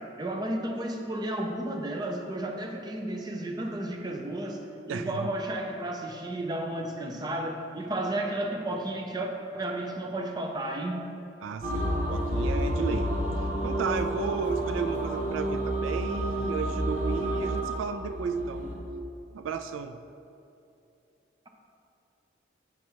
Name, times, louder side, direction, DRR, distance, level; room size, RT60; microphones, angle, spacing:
voice 1, 0.0-4.6 4.9-11.0, right 1 dB, 20° right, 2 dB, 0.5 m, -32 dB
voice 2, 11.4-13.1 13.6-18.6 19.3-20.0, right 5 dB, 85° right, 10 dB, 0.3 m, -33 dB
sound 1, 11.6-18.7, right 1 dB, 40° right, 1.2 m, -29 dB
7.3 x 5.2 x 4.5 m, 2.7 s
head